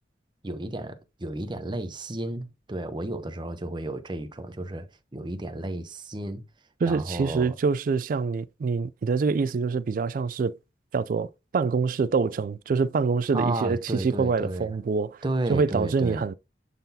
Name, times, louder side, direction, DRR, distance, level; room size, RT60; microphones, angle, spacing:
voice 1, 0.4-4.9 5.1-6.4 6.9-7.5 13.3-14.7 15.2-16.3, right 1 dB, 25° right, 0.8 m, -32 dB
voice 2, 6.8-10.6 10.9-15.2 15.5-16.3, right 4 dB, 50° right, 0.3 m, -25 dB
11.0 x 3.9 x 2.7 m
head